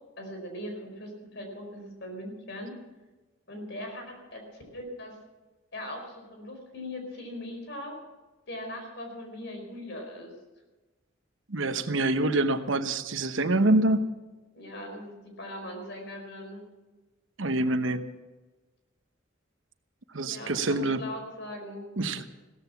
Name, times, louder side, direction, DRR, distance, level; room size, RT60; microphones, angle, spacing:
voice 1, 0.2-2.7 3.5-4.4 4.7-5.2 5.7-8.0 8.5-10.3 14.5-16.6 20.2-21.9, left 1 dB, 60° left, 3 dB, 4.8 m, -40 dB
voice 2, 11.5-14.0 17.4-18.0 20.1-21.0 22.0-22.3, right 2 dB, 75° right, 9 dB, 1.0 m, -25 dB
16.5 x 14.0 x 5.9 m, 1.2 s
head